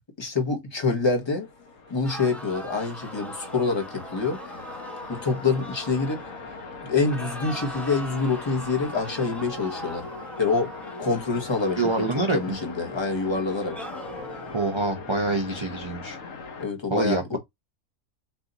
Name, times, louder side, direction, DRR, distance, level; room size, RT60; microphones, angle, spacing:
voice 1, 0.2-1.5 1.9-4.4 5.1-6.2 6.8-10.0 10.4-10.7 11.0-12.1 12.3-13.8 16.6-17.4, left 4 dB, 20° left, 1.2 m, -26 dB
sound 1, 1.1-16.7, left 4 dB, 65° left, 1.3 m, -40 dB
sound 2, 2.0-6.7 7.0-12.9 13.4-14.8, right 1 dB, ahead, 0.8 m, -41 dB
voice 2, 11.8-12.6 14.5-16.2 16.9-17.4, right 2 dB, 30° right, 0.6 m, -26 dB
4.3 x 2.7 x 3.9 m
omnidirectional pair, 1.5 m